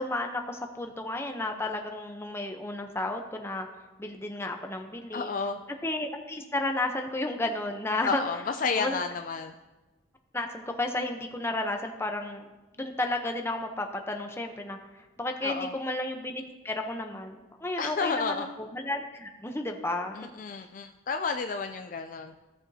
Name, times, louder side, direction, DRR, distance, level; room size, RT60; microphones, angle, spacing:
voice 1, 0.0-3.7 4.0-5.3 5.8-8.2 8.8-9.0 10.3-12.5 12.8-14.8 15.2-20.2, left 2 dB, 15° left, 4 dB, 0.7 m, -32 dB
voice 2, 5.1-5.6 8.0-9.5 15.4-15.7 17.8-18.5 20.1-22.3, left 5 dB, 45° left, 6 dB, 0.3 m, -31 dB
16.0 x 7.0 x 2.8 m, 1.2 s
head